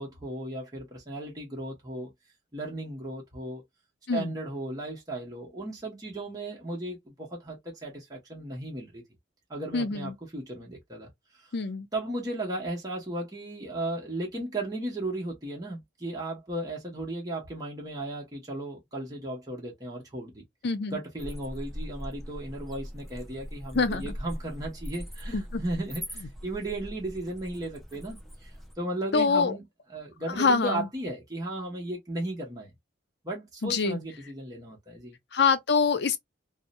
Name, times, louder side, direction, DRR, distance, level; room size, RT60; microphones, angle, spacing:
voice 1, 0.0-2.1 2.5-3.6 4.1-9.0 9.5-11.1 11.4-11.5 11.9-20.4 20.9-28.5 28.8-29.6 29.9-32.7 33.2-35.2, right 1 dB, 20° right, 0.9 m, -35 dB
voice 2, 9.7-10.1 11.5-11.9 20.6-21.0 23.7-24.1 25.3-25.6 29.1-29.5 30.4-30.9 33.6-34.0 35.3-36.2, left 5 dB, 60° left, 0.5 m, -25 dB
sound 1, 21.2-28.7, equal, ahead, 0.6 m, -40 dB
2.7 x 2.0 x 2.5 m
head